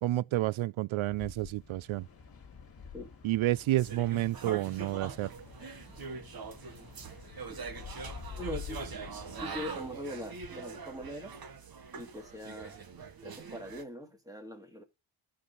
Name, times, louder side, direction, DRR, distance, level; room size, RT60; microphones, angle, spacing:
voice 1, 0.0-2.1 3.2-5.3, right 16 dB, 70° right, 0.5 m, -30 dB
sound 1, 0.9-9.9, left 6 dB, 45° left, 2.3 m, -48 dB
sound 2, 3.8-13.8, right 5 dB, 45° right, 1.5 m, -43 dB
voice 2, 8.4-11.3 11.9-12.8 13.2-14.8, left 1 dB, 5° right, 2.1 m, -43 dB
14.0 x 4.8 x 5.3 m
wide cardioid pair, 135°, 49 cm